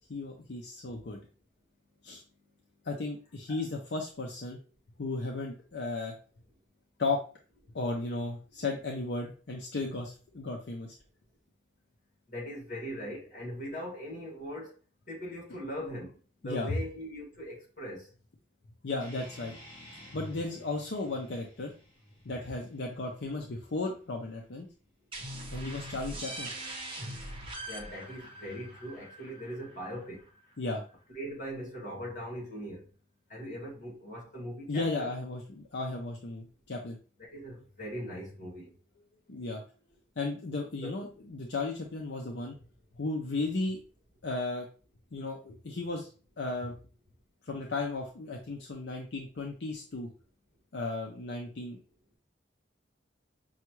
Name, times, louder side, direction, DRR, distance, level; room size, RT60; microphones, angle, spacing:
voice 1, 0.1-1.2 2.0-2.2 2.8-4.6 5.0-6.1 7.0-7.2 7.7-10.9 16.4-16.8 18.8-19.5 20.1-21.7 22.2-24.7 25.5-26.5 30.6-30.8 34.7-37.0 39.3-39.6 40.2-42.6 43.0-43.8 44.2-44.7 45.1-46.1 46.4-46.8 47.4-50.1 50.7-51.8, left 3 dB, 75° left, 0.6 m, -35 dB
voice 2, 12.3-14.7 15.1-18.1 27.7-30.3 31.1-32.9 33.3-35.1 37.2-38.7 40.8-41.0, equal, 50° left, 1.8 m, -40 dB
sound 1, 19.0-24.0, equal, 30° left, 1.9 m, -51 dB
sound 2, 25.1-30.6, right 1 dB, 30° right, 0.8 m, -42 dB
5.6 x 2.3 x 3.0 m
head